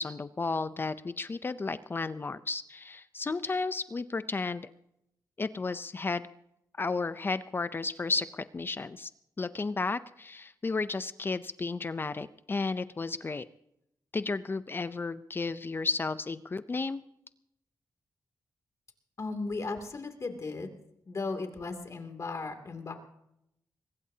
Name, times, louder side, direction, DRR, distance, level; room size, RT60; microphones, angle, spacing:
voice 1, 0.0-4.7 5.4-6.2 6.8-9.1 9.4-13.4 14.1-17.0, left 3 dB, 30° left, 13 dB, 0.6 m, -33 dB
voice 2, 19.2-20.7 21.1-22.9, left 3 dB, 45° left, 6 dB, 2.7 m, -36 dB
22.5 x 21.0 x 2.8 m, 0.80 s
wide cardioid pair, 110°, 7 cm